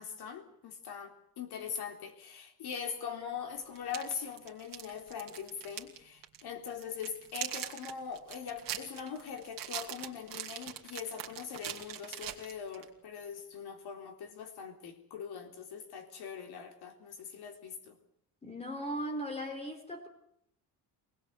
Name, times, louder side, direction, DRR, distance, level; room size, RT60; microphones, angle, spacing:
voice 1, 0.0-18.0, left 7 dB, 60° left, 3.8 m, -42 dB
sound 1, 3.8-6.0 6.2-6.4 6.8-12.9, right 11 dB, 50° right, 2.8 m, -42 dB
voice 2, 18.4-20.1, equal, 15° left, 3.7 m, -38 dB
24.5 x 20.0 x 8.2 m
cardioid pair, 170°, 42 cm